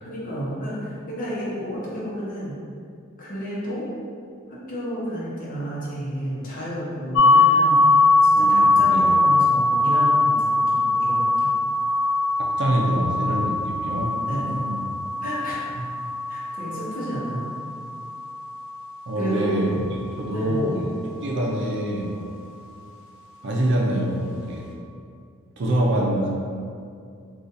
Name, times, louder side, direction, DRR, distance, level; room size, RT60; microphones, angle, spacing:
voice 1, 0.0-2.6 3.2-3.9 4.5-7.8 8.2-11.6 14.2-14.7 15.2-15.6 16.3-17.5 19.2-19.6 20.3-20.7, equal, 40° left, -7 dB, 0.8 m, -31 dB
sound 1, 7.2-18.9, left 2 dB, 65° left, 0.4 m, -21 dB
voice 2, 8.3-9.1 12.6-14.8 19.1-19.7 20.2-22.2 23.4-24.7 25.6-26.3, right 1 dB, 60° right, -2 dB, 0.5 m, -25 dB
2.7 x 2.4 x 3.9 m, 2.3 s
head